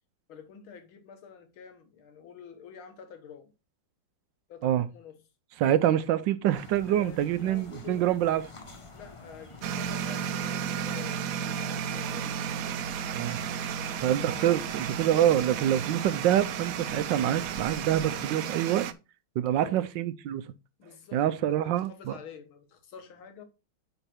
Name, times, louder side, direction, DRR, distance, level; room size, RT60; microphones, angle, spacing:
voice 1, 0.3-3.5 4.5-5.2 6.9-8.4 8.9-12.4 13.8-14.6 19.5-19.9 20.8-23.4, left 7 dB, 85° left, 2.1 m, -48 dB
voice 2, 5.6-8.4 13.1-13.4 14.0-18.9 19.4-20.5 21.1-22.2, right 11 dB, 75° right, 1.2 m, -26 dB
sound 1, 6.5-18.3, left 3 dB, 25° left, 0.8 m, -49 dB
sound 2, 9.6-18.9, right 8 dB, 90° right, 0.7 m, -33 dB
9.0 x 4.0 x 4.4 m
omnidirectional pair, 2.2 m